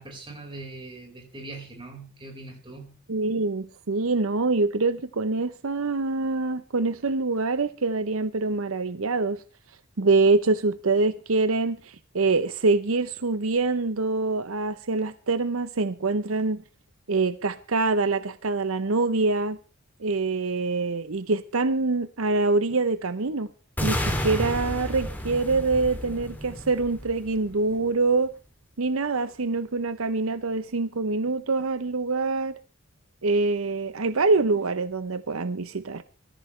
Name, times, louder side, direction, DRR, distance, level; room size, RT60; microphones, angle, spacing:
voice 1, 0.0-3.0, right 2 dB, 25° right, 5.0 m, -41 dB
voice 2, 3.1-9.4 10.0-16.6 17.1-19.6 20.0-23.5 23.8-28.3 28.8-32.5 33.2-36.0, right 3 dB, 80° right, 0.8 m, -25 dB
sound 1, 23.8-27.8, equal, 10° left, 2.8 m, -31 dB
23.0 x 14.5 x 3.3 m
head